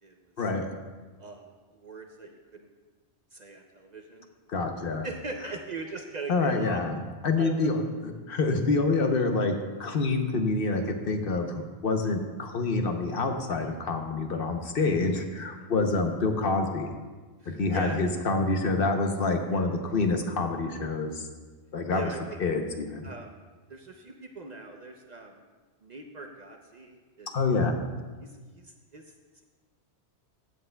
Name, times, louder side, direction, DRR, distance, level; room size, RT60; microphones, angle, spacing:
voice 1, 0.0-0.5 1.2-2.7 3.3-4.3 5.0-6.8 7.4-7.5 15.6-15.7 17.4-18.0 19.5-19.7 21.9-22.4 23.0-23.4 23.7-25.4 25.8-27.6 28.2-29.1, right 3 dB, 45° right, 3 dB, 0.6 m, -41 dB
voice 2, 4.5-5.1 6.3-9.5 9.8-16.9 17.5-21.2 21.7-22.1 22.4-23.1 27.3-27.7, left 3 dB, 60° left, 4 dB, 0.9 m, -27 dB
15.5 x 7.9 x 2.2 m, 1.4 s
omnidirectional pair, 1.2 m